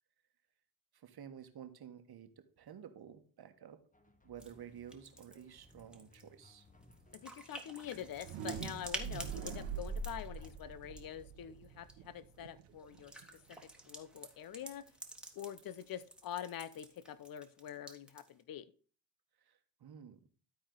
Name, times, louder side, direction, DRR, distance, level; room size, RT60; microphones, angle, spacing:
voice 1, 0.9-2.3 2.6-3.8 4.2-6.7 19.4-20.2, right 8 dB, 50° right, 1.4 m, -52 dB
sound 1, 3.9-10.6, left 3 dB, 15° left, 1.2 m, -63 dB
sound 2, 4.4-4.5 4.8-11.2 11.6-11.9 12.8-18.4, right 1 dB, ahead, 1.6 m, -50 dB
voice 2, 7.1-13.2 13.5-13.6 13.9-14.9 15.3-18.7, left 10 dB, 45° left, 0.7 m, -46 dB
sound 3, 8.1-13.9, right 5 dB, 80° right, 1.3 m, -44 dB
12.5 x 4.3 x 3.9 m
supercardioid pair, 60°, 49 cm